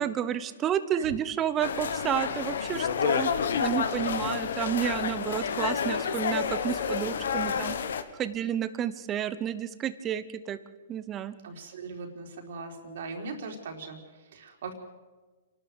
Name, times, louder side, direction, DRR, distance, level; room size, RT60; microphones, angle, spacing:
voice 1, 0.0-7.8 8.1-10.6 10.9-11.4, right 10 dB, 25° right, 13 dB, 1.1 m, -31 dB
sound 1, 1.6-8.0, left 7 dB, 75° left, 1.5 m, -29 dB
voice 2, 11.4-14.7, right 4 dB, 65° right, 2 dB, 4.1 m, -40 dB
27.0 x 12.5 x 8.1 m, 1.3 s
hypercardioid pair, 135°, 0 cm